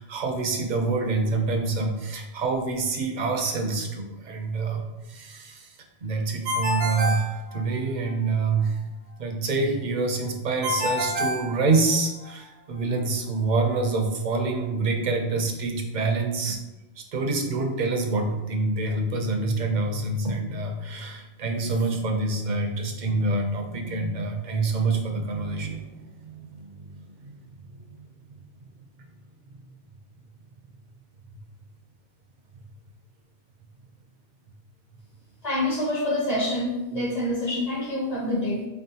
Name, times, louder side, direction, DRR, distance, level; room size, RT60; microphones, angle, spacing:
voice 1, 0.0-8.8 9.2-16.6 17.0-27.9 31.3-31.4, right 3 dB, 55° right, 4 dB, 0.6 m, -27 dB
Ringtone, 6.4-8.1 10.6-12.3, left 1 dB, 75° right, 0.9 m, -28 dB
voice 2, 35.4-38.7, left 1 dB, 40° left, -1 dB, 0.8 m, -26 dB
4.5 x 3.0 x 2.8 m, 1.0 s
omnidirectional pair, 1.1 m